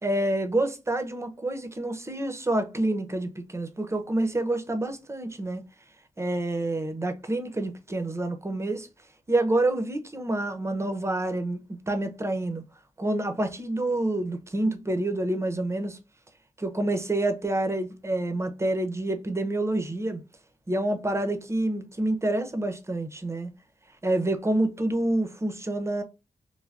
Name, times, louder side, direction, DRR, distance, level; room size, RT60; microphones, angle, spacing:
voice 1, 0.0-5.6 6.2-8.9 9.3-12.6 13.0-16.0 16.6-20.2 20.7-23.5 24.0-26.0, right 1 dB, 20° right, 0.7 m, -28 dB
3.4 x 2.2 x 2.4 m
cardioid pair, 60°, 13 cm